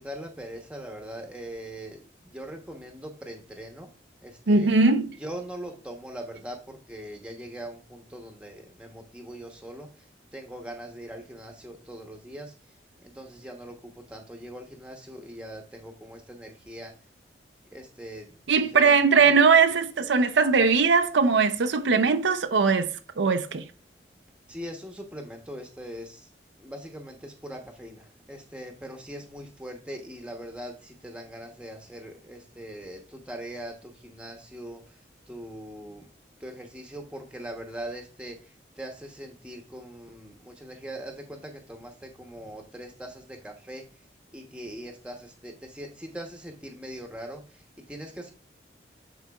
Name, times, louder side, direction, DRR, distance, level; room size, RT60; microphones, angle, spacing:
voice 1, 0.0-3.9 4.2-4.7 5.2-10.1 10.3-12.5 13.0-16.9 17.7-19.3 24.4-26.3 26.6-35.0 35.3-36.1 36.4-43.8 44.3-48.3, right 1 dB, 5° right, 0.9 m, -41 dB
voice 2, 4.5-5.1 18.5-22.9 23.2-23.7, right 4 dB, 85° right, 0.5 m, -20 dB
10.5 x 3.9 x 2.3 m
head